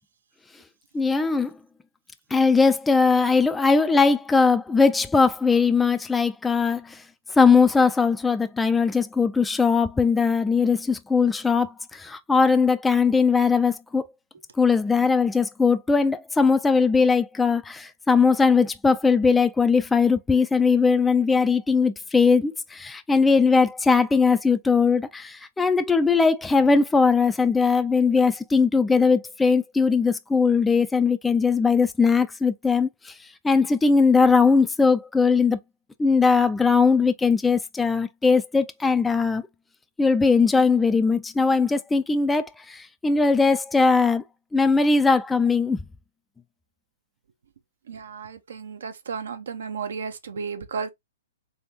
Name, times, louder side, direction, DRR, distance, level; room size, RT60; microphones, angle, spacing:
voice 1, 0.9-1.5 2.3-7.0 7.4-14.1 14.6-33.1 33.4-35.6 36.0-39.4 40.0-44.2 44.5-45.8, left 4 dB, 5° left, 0.3 m, -20 dB
voice 2, 47.9-50.9, right 5 dB, 80° right, 0.9 m, -33 dB
3.5 x 3.5 x 2.7 m
hypercardioid pair, 145°, 0 cm